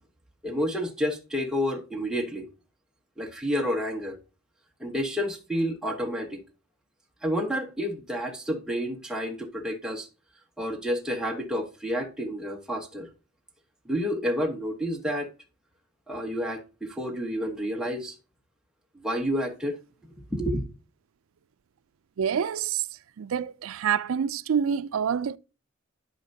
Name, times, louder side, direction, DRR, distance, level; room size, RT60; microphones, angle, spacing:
voice 1, 0.4-2.5 3.2-4.2 4.8-6.4 7.2-10.1 10.6-13.1 13.8-15.3 16.1-18.1 18.9-19.8 20.0-20.6, equal, 5° right, 1.1 m, -30 dB
voice 2, 22.2-22.8 23.2-25.4, right 7 dB, 85° right, 0.4 m, -27 dB
11.5 x 5.1 x 2.7 m
head